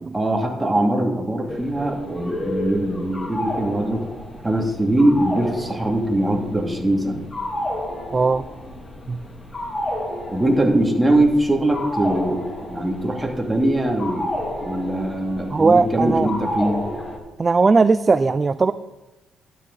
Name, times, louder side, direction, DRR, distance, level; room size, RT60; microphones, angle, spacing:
voice 1, 0.1-4.1 4.4-7.2 10.3-12.4 12.7-14.3 14.6-16.8, right 1 dB, 10° right, 0 dB, 2.4 m, -21 dB
sound 1, 1.5-17.2, left 1 dB, 30° left, 2.7 m, -31 dB
voice 2, 8.1-8.5 9.1-9.2 15.5-16.3 17.4-18.7, right 4 dB, 30° right, 13 dB, 0.4 m, -18 dB
12.0 x 9.7 x 4.0 m, 1.0 s
cardioid pair, 90°, 0 cm